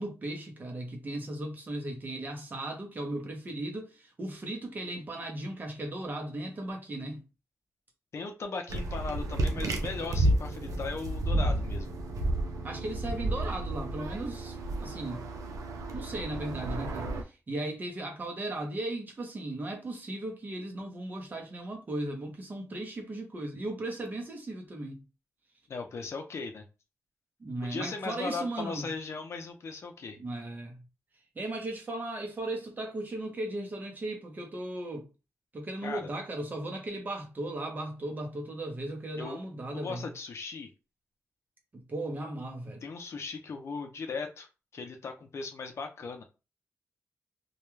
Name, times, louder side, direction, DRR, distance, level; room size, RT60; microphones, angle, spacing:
voice 1, 0.0-7.2 12.6-15.3 15.9-25.0 27.4-28.9 30.2-30.8 31.3-35.1 35.5-40.0 41.7-42.8, right 1 dB, 35° right, 0.7 m, -37 dB
voice 2, 8.1-11.9 25.7-26.6 27.7-30.2 35.8-36.1 39.2-39.4 39.7-40.7 42.8-44.5 44.7-46.2, left 4 dB, 55° left, 0.5 m, -38 dB
airplane above, 8.7-17.2, right 1 dB, 80° right, 0.5 m, -31 dB
2.3 x 2.2 x 3.1 m
wide cardioid pair, 125°, 6 cm